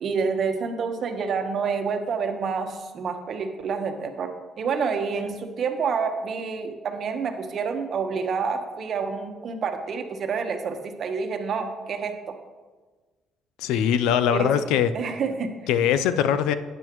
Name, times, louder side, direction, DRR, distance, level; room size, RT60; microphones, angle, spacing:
voice 1, 0.0-4.3 4.6-12.1 14.3-14.5 14.9-15.5, right 5 dB, 55° right, 6 dB, 1.1 m, -28 dB
voice 2, 13.6-14.9 15.7-16.5, left 9 dB, 90° left, 12 dB, 0.5 m, -21 dB
12.0 x 8.9 x 3.1 m, 1.3 s
cardioid pair, 85°, 0 cm